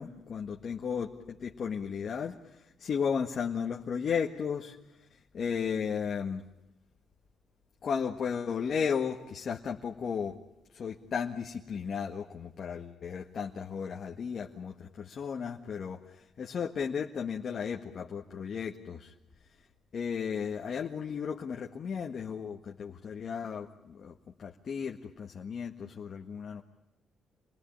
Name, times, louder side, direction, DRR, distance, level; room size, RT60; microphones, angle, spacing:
voice 1, 0.0-2.3 2.8-4.8 5.3-6.4 7.8-10.3 10.7-19.1 19.9-24.1 24.4-26.6, left 6 dB, 55° left, 1 dB, 1.7 m, -34 dB
28.0 x 20.0 x 8.9 m, 0.95 s
cardioid pair, 90°, 0 cm